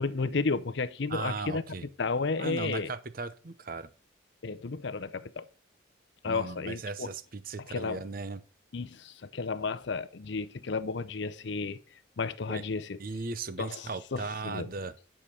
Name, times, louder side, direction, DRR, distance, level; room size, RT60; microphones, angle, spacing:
voice 1, 0.0-1.6 2.0-2.9 4.4-5.5 6.2-7.1 7.7-8.0 8.7-11.8 12.2-13.0 13.6-14.7, left 4 dB, 60° left, 0.6 m, -32 dB
voice 2, 1.1-1.9 2.4-3.9 6.2-8.4 12.5-12.6 13.0-14.9, right 3 dB, 45° right, 0.7 m, -37 dB
10.0 x 5.0 x 5.4 m
head